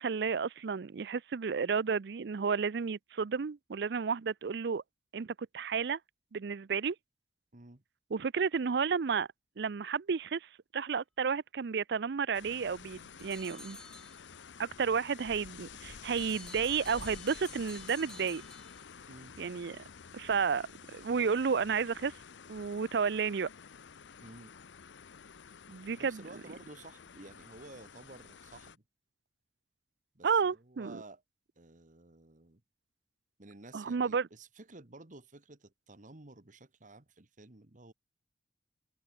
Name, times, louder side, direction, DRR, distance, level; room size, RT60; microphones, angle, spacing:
voice 1, 0.0-4.8 5.1-6.0 6.3-7.0 8.1-9.3 9.6-13.8 14.6-18.4 19.4-19.8 20.1-22.1 22.5-23.5 25.7-26.2 30.2-31.0 33.7-34.3, right 6 dB, 65° right, 0.5 m, -32 dB
voice 2, 7.5-7.8 19.1-19.3 24.2-24.5 25.9-28.8 30.1-31.2 31.6-32.6 33.4-37.9, right 2 dB, 45° right, 1.6 m, -53 dB
sound 1, 12.3-28.8, left 6 dB, 85° left, 0.7 m, -51 dB
sound 2, 13.2-14.5 16.2-19.2, left 1 dB, 5° left, 1.1 m, -51 dB
head